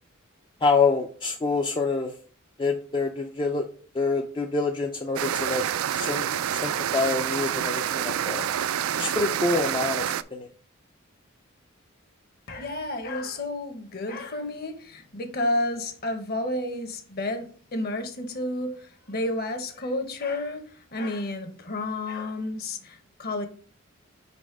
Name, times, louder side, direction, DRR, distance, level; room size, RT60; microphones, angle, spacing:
voice 1, 0.6-2.1 2.6-3.6 3.9-5.6 5.9-8.4 9.0-10.5, left 4 dB, 25° left, 0.4 m, -26 dB
sound 1, 5.2-10.2, right 9 dB, 85° right, 0.3 m, -28 dB
voice 2, 12.5-23.5, left 1 dB, 45° left, 1.0 m, -31 dB
4.9 x 4.1 x 4.7 m
head